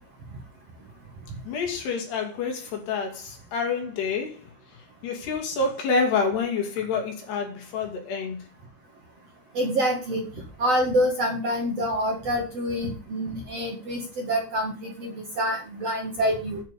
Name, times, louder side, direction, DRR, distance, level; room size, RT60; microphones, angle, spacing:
voice 1, 1.5-4.4 5.0-8.4, left 4 dB, 70° left, 4.4 m, -27 dB
voice 2, 9.5-10.2 10.6-16.6, equal, 45° right, 2.4 m, -26 dB
9.2 x 6.2 x 8.2 m
omnidirectional pair, 5.1 m